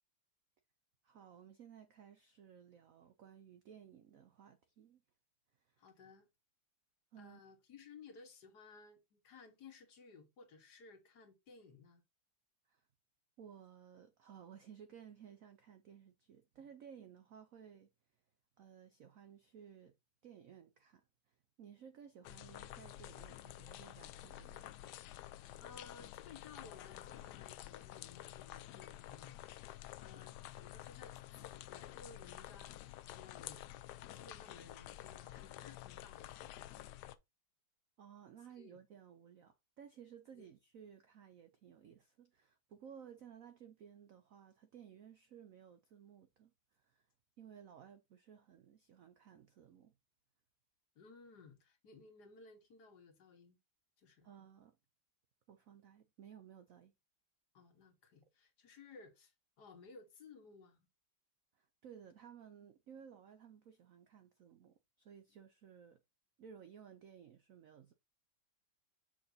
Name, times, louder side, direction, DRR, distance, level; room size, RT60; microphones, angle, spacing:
voice 1, 1.0-5.0 5.6-5.8 7.1-7.4 12.7-12.8 13.4-17.9 18.6-19.9 20.2-21.0 21.6-24.7 38.0-47.0 47.4-49.9 54.2-54.8 55.5-56.9 61.5-66.0 66.4-67.9, right 8 dB, 70° right, 0.8 m, -57 dB
voice 2, 5.8-6.3 7.2-12.0 25.6-29.4 30.0-32.8 33.0-33.7 34.1-36.7 38.6-38.8 40.3-40.5 51.0-53.6 54.0-54.3 57.5-60.9 65.3-65.4, left 4 dB, 60° left, 1.8 m, -58 dB
sound 1, 22.2-37.2, left 14 dB, 75° left, 1.0 m, -50 dB
6.5 x 5.8 x 2.7 m
omnidirectional pair, 2.1 m